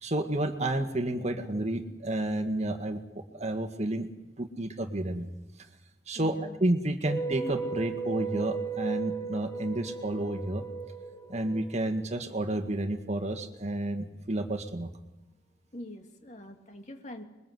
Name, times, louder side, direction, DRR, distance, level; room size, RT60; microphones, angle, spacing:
voice 1, 0.0-4.1 4.4-5.3 6.1-6.4 6.6-10.6 11.3-14.9, right 1 dB, 40° right, 7 dB, 1.8 m, -31 dB
voice 2, 6.1-6.7 15.7-17.2, left 1 dB, 40° left, 4 dB, 2.7 m, -44 dB
sound 1, 7.0-12.2, right 5 dB, 20° left, 4.9 m, -36 dB
26.0 x 22.0 x 7.9 m, 0.99 s
head